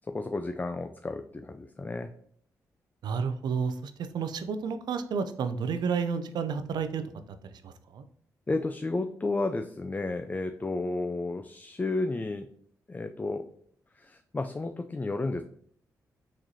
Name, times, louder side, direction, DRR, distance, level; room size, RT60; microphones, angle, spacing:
voice 1, 0.1-2.1 8.5-12.5 12.9-13.5 14.0-15.4, left 2 dB, 20° left, 7 dB, 0.3 m, -32 dB
voice 2, 3.0-7.0 7.6-8.0, right 6 dB, 70° right, 9 dB, 0.4 m, -31 dB
3.8 x 3.1 x 2.7 m, 0.62 s
supercardioid pair, 45°, 7 cm